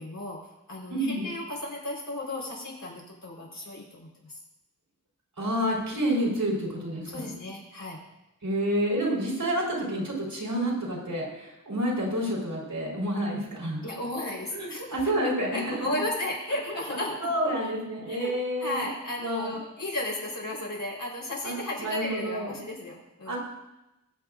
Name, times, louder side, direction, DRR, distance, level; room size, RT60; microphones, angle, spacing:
voice 1, 0.0-4.4 7.0-8.0 13.8-17.7 18.0-18.3 18.6-23.4, left 1 dB, 75° left, -3 dB, 4.0 m, -35 dB
voice 2, 0.9-1.3 5.4-7.3 8.4-13.8 14.5-16.0 17.2-18.9 19.2-19.5 21.4-22.5 23.3-23.4, equal, 85° right, -4 dB, 4.0 m, -29 dB
21.0 x 8.4 x 2.5 m, 0.96 s
wide cardioid pair, 75°, 33 cm